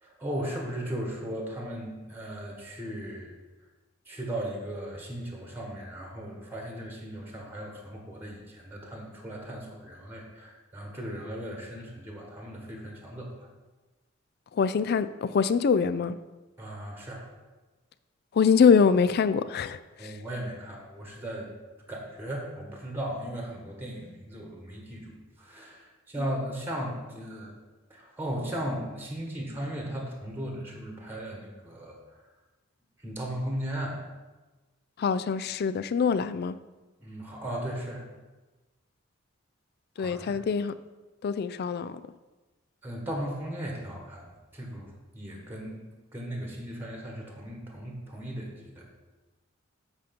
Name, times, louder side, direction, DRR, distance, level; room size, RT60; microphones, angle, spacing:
voice 1, 0.0-3.3 4.0-13.5 16.6-17.2 20.0-21.5 21.9-27.5 27.9-32.0 33.0-34.0 37.0-38.0 40.0-40.4 42.8-45.8 46.1-48.9, right 1 dB, 10° right, 0 dB, 1.3 m, -37 dB
voice 2, 14.6-16.2 18.3-19.8 35.0-36.5 40.0-40.7 41.2-41.9, left 6 dB, 50° left, 14 dB, 0.3 m, -24 dB
8.3 x 5.1 x 5.2 m, 1.2 s
head